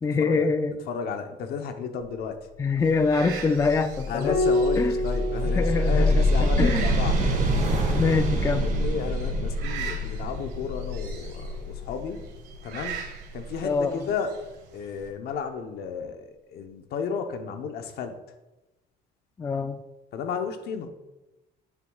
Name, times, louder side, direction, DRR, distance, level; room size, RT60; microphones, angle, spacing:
voice 1, 0.0-0.8 2.6-4.4 4.7-5.0 5.4-6.9 7.2-7.3 7.9-8.7 13.6-14.1 19.4-19.8, left 4 dB, 20° left, 9 dB, 0.4 m, -25 dB
voice 2, 0.9-2.4 4.1-7.4 8.5-12.2 12.6-14.3 14.7-18.2 20.1-20.9, left 6 dB, 70° left, 6 dB, 0.9 m, -33 dB
sound 1, 2.8-15.1, right 7 dB, 75° right, 1.7 m, -43 dB
sound 2, 3.5-13.5, equal, 50° right, 2.1 m, -26 dB
Piano, 4.3-9.1 10.8-11.6, left 1 dB, 45° left, 2.0 m, -31 dB
9.2 x 7.3 x 2.4 m, 1.0 s
cardioid pair, 110°, 17 cm